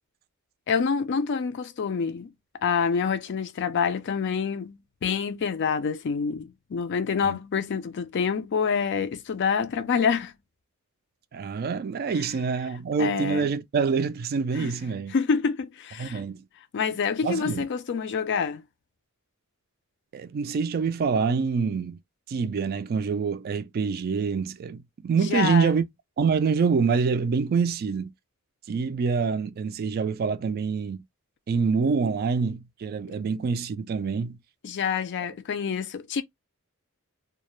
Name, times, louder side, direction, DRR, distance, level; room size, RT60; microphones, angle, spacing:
voice 1, 0.7-2.3 2.6-10.3 13.0-13.5 14.6-14.7 15.1-16.2 16.7-18.6 25.3-25.7 34.6-36.2, left 6 dB, 55° left, 0.4 m, -27 dB
voice 2, 11.3-15.1 16.0-16.4 17.2-17.7 20.1-22.0 22.3-25.8 26.2-28.1 28.7-31.0 31.5-34.4, right 5 dB, 45° right, 0.3 m, -26 dB
2.3 x 2.1 x 3.0 m
head